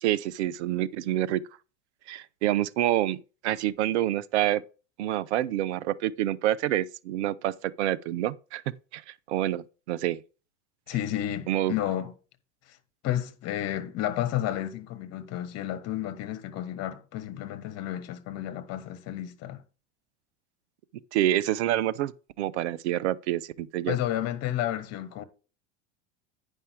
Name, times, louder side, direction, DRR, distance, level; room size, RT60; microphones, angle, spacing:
voice 1, 0.0-1.4 2.1-3.2 3.4-4.6 5.0-8.6 8.9-9.0 9.3-10.2 11.5-11.7 21.1-22.1 22.4-24.0, right 13 dB, 70° right, 0.8 m, -27 dB
voice 2, 10.9-12.1 12.7-12.8 13.0-19.6 23.9-25.2, left 12 dB, 45° left, 1.5 m, -31 dB
9.8 x 5.5 x 4.5 m
hypercardioid pair, 95°, 34 cm